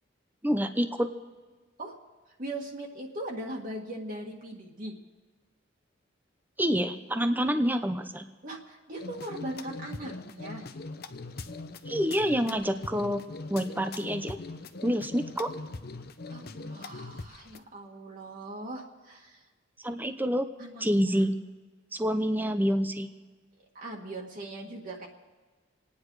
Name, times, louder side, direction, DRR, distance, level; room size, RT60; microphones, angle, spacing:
voice 1, 0.4-1.1 6.6-8.2 11.9-13.2 13.5-14.4 14.8-15.5 19.8-20.5 20.8-21.3 21.9-23.1, equal, 10° right, 8 dB, 0.7 m, -27 dB
voice 2, 2.4-5.0 8.4-10.6 16.3-19.4 20.6-21.2 23.7-25.1, right 1 dB, 45° right, -1 dB, 1.8 m, -40 dB
sound 1, 9.0-17.6, left 3 dB, 50° left, 0.8 m, -41 dB
27.0 x 9.7 x 4.8 m, 1.3 s
head